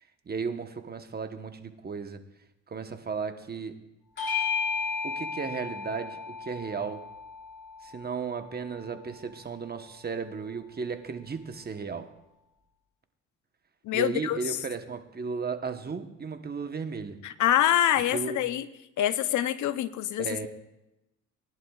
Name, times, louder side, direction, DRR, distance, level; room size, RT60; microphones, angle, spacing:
voice 1, 0.3-2.2 2.7-3.7 5.0-7.0 7.8-12.1 13.9-17.2 18.1-18.4 20.2-20.5, right 5 dB, 30° right, 7 dB, 1.1 m, -35 dB
Bell / Doorbell, 4.2-9.0, left 5 dB, 40° left, 3.5 m, -34 dB
voice 2, 13.8-14.6 17.2-18.7 19.0-20.3, left 12 dB, 75° left, 14 dB, 0.7 m, -25 dB
19.5 x 11.0 x 2.4 m, 0.92 s
cardioid pair, 90°, 30 cm